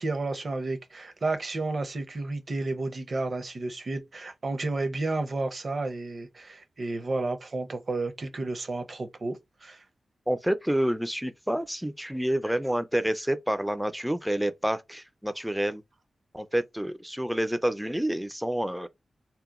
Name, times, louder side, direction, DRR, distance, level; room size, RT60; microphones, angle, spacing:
voice 1, 0.0-9.8, right 2 dB, 55° right, 0.6 m, -32 dB
voice 2, 10.3-15.8 16.3-18.9, right 1 dB, 5° right, 0.4 m, -28 dB
2.8 x 2.1 x 2.4 m
cardioid pair, 60°, 0 cm